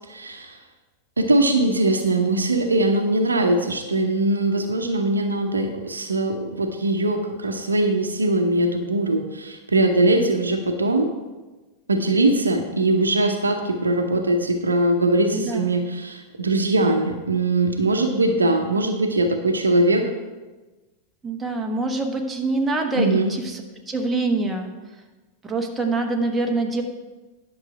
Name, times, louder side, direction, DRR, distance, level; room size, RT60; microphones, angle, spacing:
voice 1, 0.1-0.6 1.2-11.1 11.9-20.0 23.0-23.3, right 2 dB, 75° right, 5 dB, 0.9 m, -21 dB
voice 2, 15.3-15.7 21.2-24.7 25.4-26.8, right 3 dB, 10° right, 1 dB, 1.3 m, -25 dB
11.0 x 6.5 x 4.7 m, 1.2 s
figure-of-eight pair, 90°, 0 cm